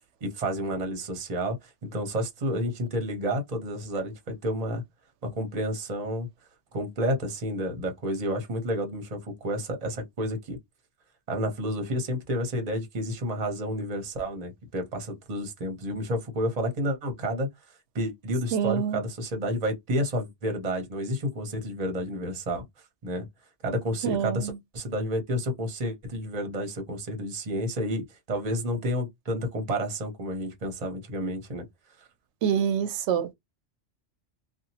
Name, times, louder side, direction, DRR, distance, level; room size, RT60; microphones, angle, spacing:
voice 1, 0.2-4.8 5.2-6.3 6.7-10.6 11.3-17.5 17.9-22.6 23.0-23.3 23.6-31.7, equal, 40° right, 0.8 m, -30 dB
voice 2, 18.5-19.0 24.0-24.6 32.4-33.3, right 8 dB, 80° right, 0.9 m, -26 dB
2.8 x 2.3 x 2.7 m
omnidirectional pair, 1.2 m